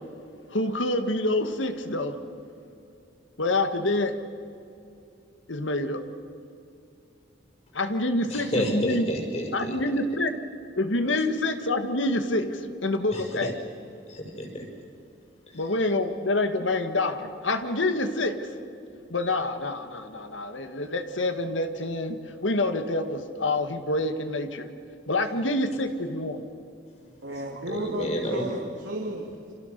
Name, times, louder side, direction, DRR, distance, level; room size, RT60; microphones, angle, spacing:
voice 1, 0.5-2.2 3.4-4.2 5.5-6.0 7.7-9.0 9.5-10.3 10.8-13.5 15.5-18.4 19.1-24.7 25.1-26.5, left 2 dB, 90° left, 8 dB, 1.8 m, -27 dB
voice 2, 8.3-9.9 13.1-13.5 14.1-14.6 15.5-15.7 27.7-28.5, equal, 35° left, 2 dB, 5.9 m, -31 dB
voice 3, 27.2-29.5, right 1 dB, 90° right, -1 dB, 2.8 m, -34 dB
29.0 x 27.0 x 6.8 m, 2.6 s
head